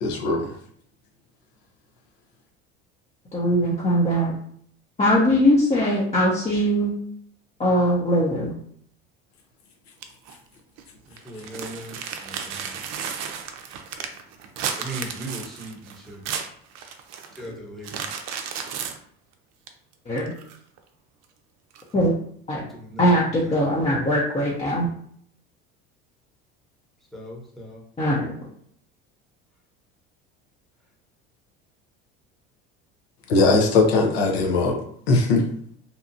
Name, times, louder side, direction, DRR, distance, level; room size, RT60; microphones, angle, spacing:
voice 1, 0.0-0.5 33.3-35.5, left 3 dB, 90° left, 2 dB, 0.8 m, -20 dB
voice 2, 3.3-4.3 5.0-6.9 7.6-8.5 20.1-20.3 21.9-22.1 22.5-22.6 23.0-24.9 28.0-28.3, equal, 20° left, -5 dB, 0.6 m, -21 dB
sound 1, 10.0-10.3 10.8-10.9 11.1-17.5 17.8-19.0 19.7-19.8 20.2-20.8 21.7-21.8, right 7 dB, 60° right, 0.5 m, -33 dB
voice 3, 11.2-12.8 14.7-16.4 17.4-18.1 22.7-23.6 27.1-27.8, right 1 dB, ahead, -3 dB, 0.9 m, -39 dB
2.8 x 2.3 x 2.6 m, 0.63 s
supercardioid pair, 85°, 30 cm